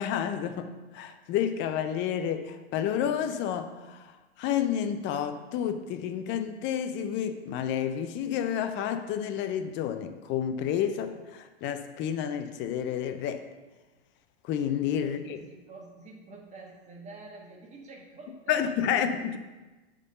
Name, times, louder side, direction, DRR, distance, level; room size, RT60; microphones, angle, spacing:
voice 1, 0.0-4.1 4.4-13.4 14.4-15.4 18.5-19.4, left 9 dB, 35° left, 9 dB, 0.6 m, -30 dB
voice 2, 15.0-19.0, right 3 dB, 20° right, 0 dB, 1.5 m, -48 dB
8.2 x 3.8 x 5.4 m, 1.2 s
hypercardioid pair, 115°, 32 cm